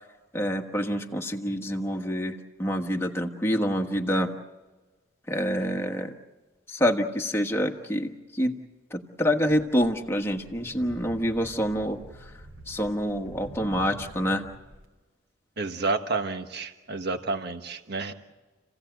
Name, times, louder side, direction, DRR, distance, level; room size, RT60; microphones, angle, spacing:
voice 1, 0.3-4.3 5.3-6.1 6.7-8.6 8.9-12.0 12.7-14.4, equal, 10° left, 2 dB, 1.4 m, -27 dB
sound 1, 9.7-14.9, right 1 dB, 85° right, 3.1 m, -46 dB
voice 2, 15.6-18.1, right 3 dB, 50° right, 7 dB, 1.4 m, -30 dB
29.5 x 16.5 x 8.0 m, 1.2 s
head